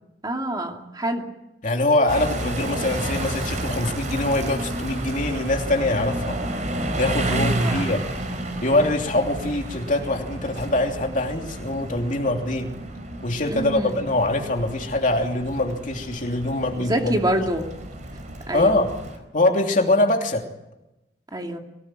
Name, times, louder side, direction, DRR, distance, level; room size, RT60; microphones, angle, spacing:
voice 1, 0.2-1.2 7.3-7.8 13.5-14.0 16.8-17.7 18.5-18.8 21.3-21.6, right 1 dB, 25° right, 2 dB, 2.7 m, -26 dB
voice 2, 1.6-6.4 7.0-8.0 8.6-12.7 13.2-17.2 18.5-18.9 19.3-20.5, left 2 dB, 45° left, 3 dB, 3.0 m, -23 dB
sound 1, 2.1-19.2, right 1 dB, 45° right, 4.3 m, -31 dB
23.5 x 18.0 x 9.1 m, 0.94 s
head